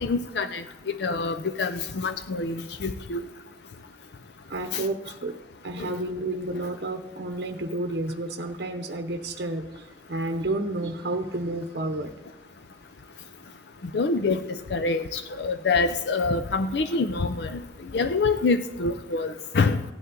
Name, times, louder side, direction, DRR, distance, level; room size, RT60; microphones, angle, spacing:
voice 1, 0.0-3.3 4.7-4.8 5.8-5.9 13.9-17.6 17.9-19.8, left 4 dB, 70° left, 9 dB, 0.5 m, -26 dB
voice 2, 4.5-5.3 5.6-12.1, right 2 dB, 65° right, 5 dB, 0.8 m, -31 dB
16.0 x 9.5 x 3.8 m, 1.2 s
head